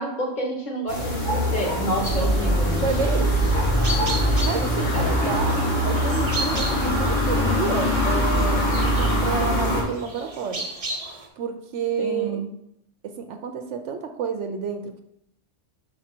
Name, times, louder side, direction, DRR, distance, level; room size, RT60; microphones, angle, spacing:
voice 1, 0.0-2.8 4.9-5.2 12.0-12.5, right 1 dB, 40° left, 0 dB, 1.3 m, -29 dB
sound 1, 0.9-9.8, equal, 90° left, 1.8 m, -22 dB
sound 2, 2.0-11.3, right 1 dB, 35° right, 0.9 m, -35 dB
voice 2, 2.8-3.5 4.4-10.7 11.4-12.5 13.1-15.0, right 6 dB, 80° right, 6 dB, 0.9 m, -30 dB
Cough, 4.8-6.2 6.6-7.2, equal, 65° left, 2.1 m, -40 dB
6.0 x 4.7 x 4.3 m, 0.78 s
omnidirectional pair, 1.2 m